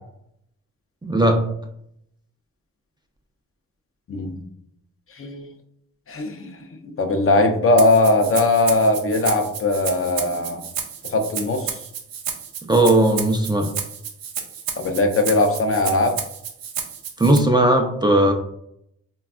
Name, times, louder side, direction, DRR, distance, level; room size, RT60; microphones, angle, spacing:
voice 1, 1.0-1.4 12.6-13.7 17.2-18.3, right 1 dB, 15° right, 2 dB, 0.4 m, -17 dB
voice 2, 4.1-4.4 5.2-5.5 6.1-6.6 6.8-10.6 11.0-11.7 14.8-16.2, left 2 dB, 40° left, 4 dB, 0.6 m, -19 dB
Rattle (instrument), 7.8-17.4, right 7 dB, 85° right, 0.5 m, -32 dB
3.3 x 2.3 x 2.4 m, 0.74 s
supercardioid pair, 45°, 33 cm